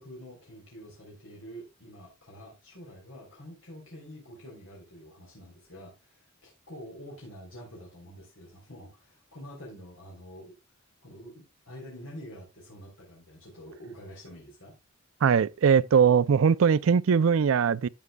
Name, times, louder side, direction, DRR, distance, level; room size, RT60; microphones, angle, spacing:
voice 1, 0.0-10.6 11.0-14.8, equal, 80° left, 3.7 m, -47 dB
voice 2, 15.2-17.9, right 6 dB, 75° right, 0.4 m, -21 dB
13.0 x 8.2 x 2.3 m
head